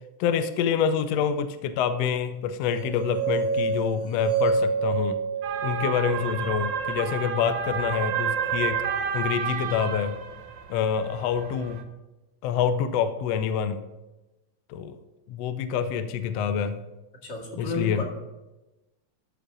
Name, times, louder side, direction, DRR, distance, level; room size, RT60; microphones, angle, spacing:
voice 1, 0.2-5.2 5.6-8.8 9.1-10.1 10.7-11.8 12.4-13.8 14.7-15.0 15.3-16.8 17.6-18.0, left 7 dB, 75° left, 10 dB, 1.6 m, -26 dB
sound 1, 2.7-6.8, right 4 dB, 30° right, 2.3 m, -28 dB
sound 2, 5.4-11.8, right 7 dB, 80° right, 1.0 m, -30 dB
voice 2, 17.2-18.0, left 2 dB, 40° left, -2 dB, 2.5 m, -31 dB
13.5 x 5.0 x 6.2 m, 1.0 s
omnidirectional pair, 3.3 m